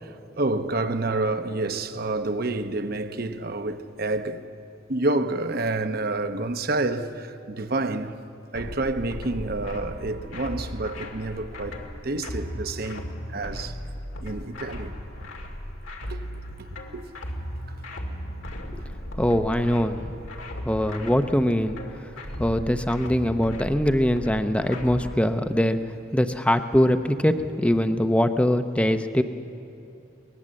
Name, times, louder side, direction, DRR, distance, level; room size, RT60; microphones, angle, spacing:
voice 1, 0.0-4.4 4.9-8.1 8.5-11.8 12.0-13.8 14.2-14.9 16.1-16.2 16.6-16.7 16.9-17.0, right 2 dB, 50° right, 0.9 m, -28 dB
sound 1, 8.5-25.1, equal, 85° left, 2.2 m, -36 dB
voice 2, 19.2-20.2 20.6-21.8 22.4-25.8 26.1-29.2, equal, 5° left, 0.7 m, -22 dB
23.5 x 19.5 x 7.6 m
head